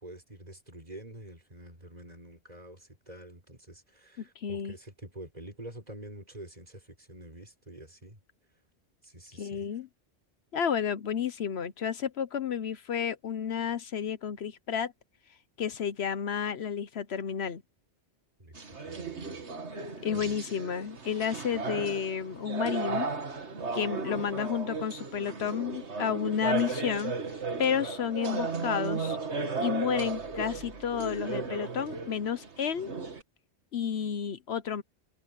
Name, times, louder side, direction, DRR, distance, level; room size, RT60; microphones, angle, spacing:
voice 1, 0.0-8.2 9.0-9.6 18.4-19.4 20.1-20.3, right 1 dB, 35° right, 4.6 m, -47 dB
voice 2, 4.4-4.7 9.4-9.9 10.5-14.9 15.6-17.6 20.0-23.1 23.7-27.1 27.6-29.2 29.6-32.9 33.7-34.8, left 8 dB, 70° left, 1.1 m, -31 dB
sound 1, 18.5-33.2, right 4 dB, 90° right, 2.2 m, -35 dB
omnidirectional pair, 1.1 m